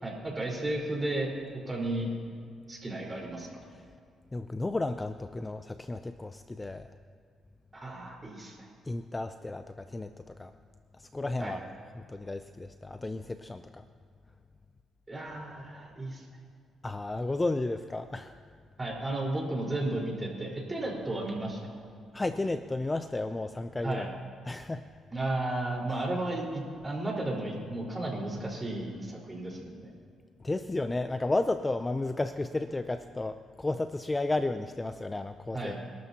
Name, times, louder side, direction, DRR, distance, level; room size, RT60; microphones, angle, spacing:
voice 1, 0.0-1.3 1.7-2.1 2.7-3.5 7.7-8.7 11.4-11.5 15.1-16.2 18.8-21.6 23.8-24.1 25.1-29.9 35.5-35.7, right 2 dB, 20° right, -2 dB, 4.4 m, -33 dB
voice 2, 4.3-6.9 8.9-10.5 11.0-11.6 11.9-13.8 16.8-18.4 22.1-24.1 24.4-24.8 30.4-35.7, left 2 dB, 20° left, 10 dB, 0.5 m, -33 dB
26.0 x 12.5 x 2.9 m, 2.2 s
cardioid pair, 90°, 0 cm